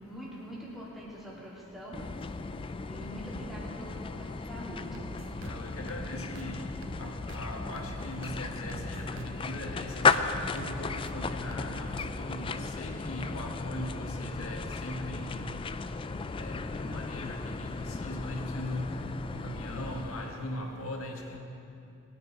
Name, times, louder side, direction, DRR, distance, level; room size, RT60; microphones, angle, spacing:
voice 1, 0.1-2.0 2.9-5.1, equal, ahead, -7 dB, 3.0 m, -43 dB
sound 1, 1.9-20.5, left 4 dB, 25° left, 0.3 m, -35 dB
sound 2, 4.9-12.5, right 2 dB, 65° right, 0.7 m, -46 dB
voice 2, 5.5-6.5 7.0-11.9 12.2-15.4 16.4-16.5 16.9-17.4 18.0-18.9 19.3-21.4, left 1 dB, 85° left, 1 dB, 1.7 m, -39 dB
21.0 x 9.8 x 4.6 m, 2.6 s
head